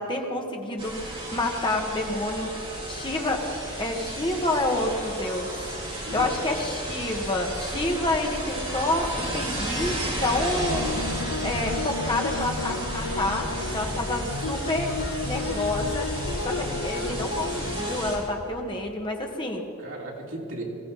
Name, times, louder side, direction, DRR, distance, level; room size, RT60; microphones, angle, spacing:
voice 1, 0.0-3.4 3.8-5.5 6.1-10.9 11.4-14.9 15.3-16.1 16.4-19.6, left 2 dB, 25° left, 1 dB, 1.7 m, -28 dB
sound 1, 0.8-18.2, right 1 dB, 25° right, 4.9 m, -33 dB
voice 2, 5.9-6.5 13.7-14.1 16.4-16.6 19.8-20.6, right 1 dB, 65° right, -3 dB, 3.3 m, -38 dB
sound 2, 10.6-18.0, left 3 dB, 65° left, 0.6 m, -33 dB
21.5 x 16.0 x 4.3 m, 2.9 s
head